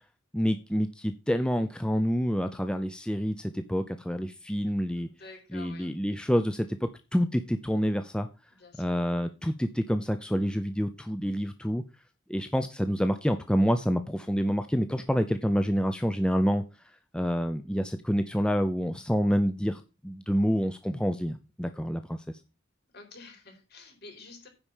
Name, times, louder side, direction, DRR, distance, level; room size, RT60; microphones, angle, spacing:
voice 1, 0.3-5.1 5.5-8.3 8.8-11.8 12.3-16.6 17.1-22.2, equal, 5° left, 8 dB, 0.5 m, -27 dB
voice 2, 5.0-5.9 8.6-8.8 22.9-24.5, left 3 dB, 55° left, 4 dB, 4.0 m, -49 dB
9.9 x 4.8 x 7.3 m, 0.30 s
head